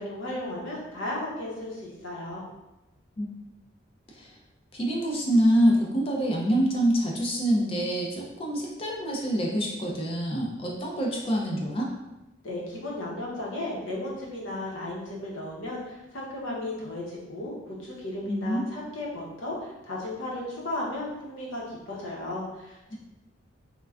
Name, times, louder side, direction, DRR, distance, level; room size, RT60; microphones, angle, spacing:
voice 1, 0.0-2.5 12.4-22.9, left 1 dB, 75° left, -3 dB, 0.8 m, -35 dB
voice 2, 4.7-11.9 18.3-18.6, equal, 30° left, -1 dB, 0.4 m, -26 dB
3.2 x 2.2 x 2.3 m, 0.97 s
head